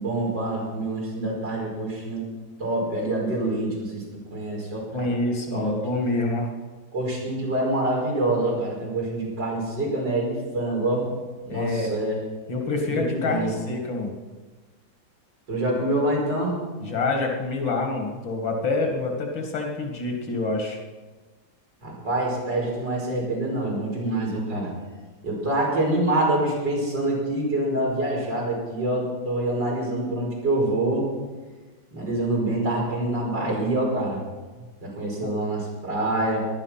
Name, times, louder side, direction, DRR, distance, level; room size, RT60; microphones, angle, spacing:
voice 1, 0.0-2.2 2.6-5.1 5.5-5.8 6.9-11.1 11.5-12.2 12.8-13.5 15.5-16.6 21.8-24.7 25.2-31.1 31.9-34.2 34.8-36.5, right 1 dB, 65° right, -3 dB, 6.0 m, -26 dB
voice 2, 4.9-6.5 11.5-11.9 12.5-14.1 16.8-20.8 35.2-35.3, left 3 dB, 90° left, 2 dB, 3.0 m, -27 dB
19.0 x 11.5 x 5.9 m, 1.3 s
omnidirectional pair, 2.1 m